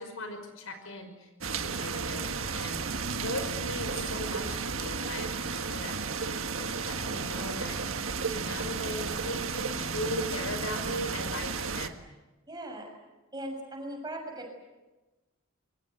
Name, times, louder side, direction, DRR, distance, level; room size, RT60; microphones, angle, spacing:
voice 1, 0.0-7.8 8.3-12.0, left 1 dB, 85° left, 7 dB, 5.5 m, -39 dB
sound 1, 1.4-11.9, right 5 dB, 75° right, 1.6 m, -33 dB
voice 2, 6.9-7.7 12.5-12.8 13.3-14.6, right 1 dB, 20° right, 2 dB, 6.8 m, -40 dB
27.0 x 23.5 x 8.0 m, 1.1 s
head